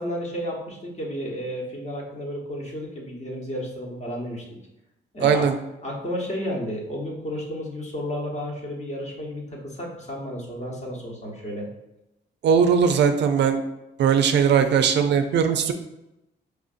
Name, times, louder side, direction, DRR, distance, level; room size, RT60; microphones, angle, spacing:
voice 1, 0.0-4.4 5.1-5.5 5.8-11.7, equal, 35° left, -2 dB, 1.1 m, -32 dB
voice 2, 5.2-5.5 12.4-13.6 14.0-15.7, right 7 dB, 65° right, 7 dB, 0.4 m, -19 dB
4.7 x 2.5 x 2.5 m, 0.91 s
cardioid pair, 90°, 20 cm